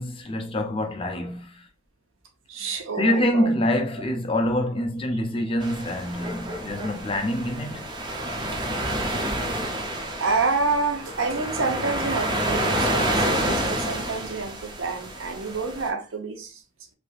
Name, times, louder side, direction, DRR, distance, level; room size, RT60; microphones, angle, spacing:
voice 1, 0.0-1.7 2.6-2.7 3.0-7.9, left 1 dB, 25° left, 0.5 m, -26 dB
voice 2, 2.5-3.5 9.3-16.6, right 4 dB, 85° right, 0.7 m, -29 dB
sound 1, 5.6-15.9, right 1 dB, 20° right, 0.5 m, -28 dB
3.2 x 2.7 x 2.3 m
head